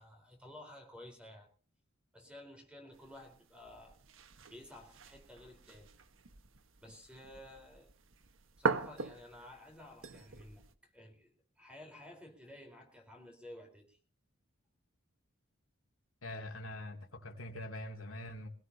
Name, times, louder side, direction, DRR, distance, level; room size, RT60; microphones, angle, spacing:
voice 1, 0.0-1.5 2.1-4.0 4.5-5.9 6.8-7.9 8.6-14.0, left 1 dB, 5° right, 4.1 m, -53 dB
sound 1, 2.9-10.7, right 4 dB, 70° right, 1.3 m, -42 dB
voice 2, 16.2-18.5, left 1 dB, 75° left, 2.8 m, -44 dB
22.5 x 17.0 x 2.8 m
head